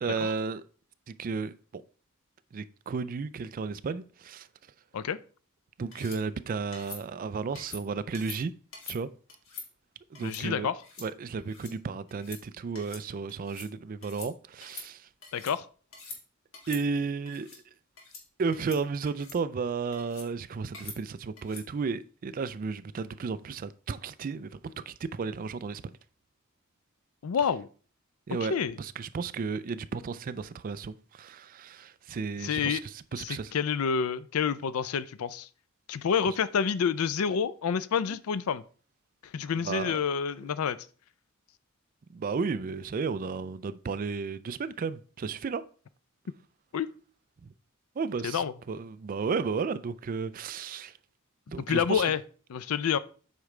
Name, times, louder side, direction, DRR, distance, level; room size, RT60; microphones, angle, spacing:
voice 1, 0.0-0.6 1.1-1.8 2.5-4.5 5.8-8.5 8.9-9.1 10.1-10.7 11.0-15.1 16.7-17.5 18.4-24.6 24.9-25.9 28.3-32.8 33.1-33.5 39.6-40.0 42.1-45.6 47.4-47.5 48.0-50.9 51.5-52.0, right 5 dB, 40° right, 0.3 m, -33 dB
sound 1, 5.9-6.2 6.7-7.0 7.6-7.8 8.1-8.4 8.7-9.0 9.3-9.7 10.1-10.4 10.8-11.1 11.4-11.7 12.1-12.4 12.7-13.0 13.3-13.7 14.0-14.3 14.6-15.5 15.9-16.2 16.5-16.8 17.3-17.6 18.0-18.2 18.5-18.8 19.1-19.4 19.9-20.3 20.7-21.0 21.4-21.7, left 4 dB, 65° left, 1.9 m, -45 dB
voice 2, 10.2-10.8 15.3-15.7 27.2-27.7 28.4-28.8 32.4-32.8 33.2-35.5 35.9-38.6 39.2-40.8 46.7-46.9 48.2-48.5 51.5-52.2 52.5-53.0, left 7 dB, 80° left, 0.4 m, -28 dB
8.1 x 4.9 x 3.2 m
head